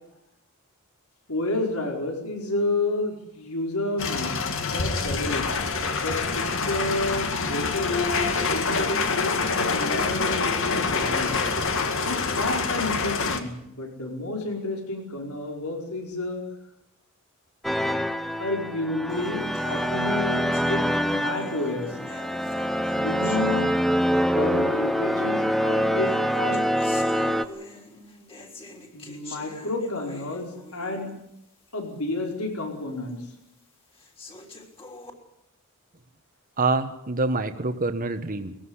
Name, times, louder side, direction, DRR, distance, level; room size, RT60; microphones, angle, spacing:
voice 1, 1.3-4.3 4.7-8.0 8.5-11.4 12.0-16.4 18.4-22.0 22.9-23.7 24.3-26.6 28.9-31.1 31.7-33.2, left 2 dB, 80° left, 1 dB, 4.9 m, -30 dB
sound 1, 4.0-13.4, left 4 dB, 65° left, 2.2 m, -26 dB
sound 2, 17.6-27.4, equal, ahead, 0.8 m, -25 dB
sound 3, 19.1-24.2 25.1-25.2 26.0-31.3 31.7-31.8 32.3-32.4 33.1-33.2 33.9-35.1, left 2 dB, 25° left, 3.6 m, -44 dB
voice 2, 36.6-38.5, right 3 dB, 40° right, 8 dB, 1.4 m, -26 dB
20.5 x 16.0 x 9.8 m, 0.83 s
head